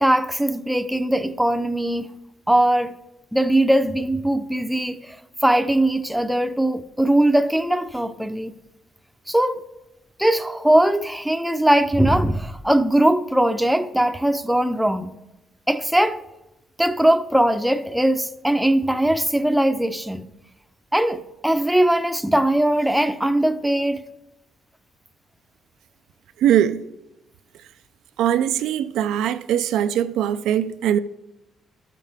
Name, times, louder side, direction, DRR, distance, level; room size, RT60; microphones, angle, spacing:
voice 1, 0.0-2.1 2.5-2.9 3.3-5.2 5.4-8.5 9.3-9.6 10.2-15.1 15.7-16.2 16.8-20.2 20.9-24.0, right 1 dB, 5° right, 0.6 m, -20 dB
voice 2, 26.4-26.8 28.2-31.0, right 10 dB, 85° right, 0.4 m, -21 dB
12.5 x 7.4 x 3.5 m
cardioid pair, 90°, 0 cm